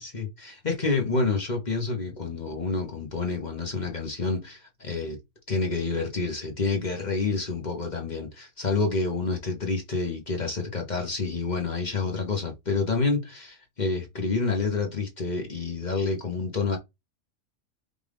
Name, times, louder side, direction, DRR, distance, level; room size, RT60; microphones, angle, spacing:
voice 1, 0.0-5.2 5.5-16.8, left 4 dB, 35° left, 1.1 m, -28 dB
5.2 x 2.5 x 3.4 m
omnidirectional pair, 1.4 m